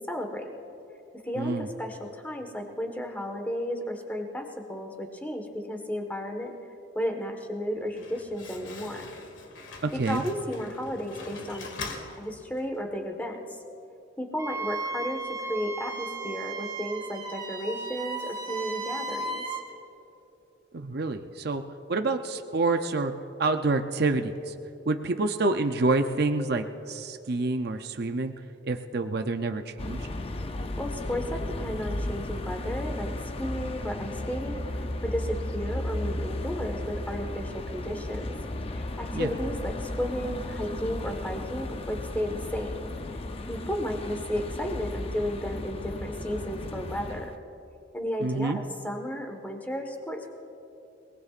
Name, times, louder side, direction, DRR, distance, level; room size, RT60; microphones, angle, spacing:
voice 1, 0.1-0.5 1.2-6.5 6.9-9.0 10.1-11.7 12.1-13.4 14.2-19.4 30.8-33.1 33.4-34.6 35.0-38.3 38.7-42.9 43.5-47.3 47.9-48.5 48.8-50.3, equal, 10° left, 3 dB, 1.4 m, -33 dB
voice 2, 1.4-1.7 9.8-10.2 20.7-21.6 21.9-23.1 23.4-24.5 24.9-28.3 28.6-30.1 39.1-39.3 48.2-48.6, right 3 dB, 55° right, 6 dB, 0.6 m, -27 dB
Slam, 7.7-12.8, left 3 dB, 80° left, 1.7 m, -43 dB
Wind instrument woodwind instrument, 14.4-19.7, right 3 dB, 20° right, 1.2 m, -35 dB
sound 1, 29.8-47.4, left 1 dB, 30° left, 0.6 m, -34 dB
29.0 x 19.5 x 2.5 m, 2.9 s
head